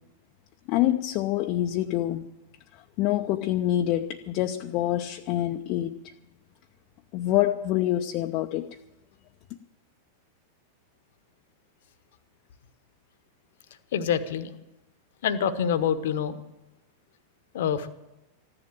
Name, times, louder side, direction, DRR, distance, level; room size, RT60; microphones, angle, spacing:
voice 1, 0.7-2.3 3.0-6.1 7.1-8.8, left 13 dB, 40° left, 0.7 m, -26 dB
voice 2, 13.9-14.5 15.2-16.4 17.5-17.9, left 8 dB, 55° left, 1.0 m, -26 dB
15.0 x 11.0 x 7.5 m
figure-of-eight pair, 90°, 0 cm